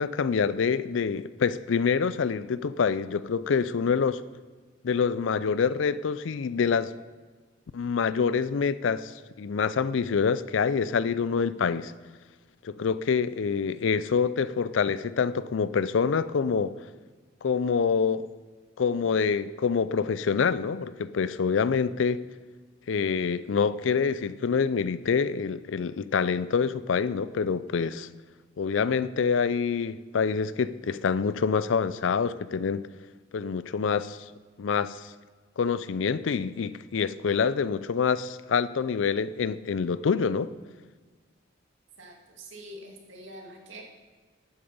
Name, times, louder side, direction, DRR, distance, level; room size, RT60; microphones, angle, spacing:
voice 1, 0.0-4.2 4.8-6.9 7.7-11.9 12.6-16.7 17.4-18.3 18.8-22.2 22.9-28.1 28.6-32.9 33.3-34.2 34.6-35.1 35.6-40.5, left 6 dB, 75° left, 0.4 m, -26 dB
voice 2, 42.0-43.8, right 1 dB, 75° right, 2.2 m, -45 dB
11.5 x 8.8 x 5.5 m
head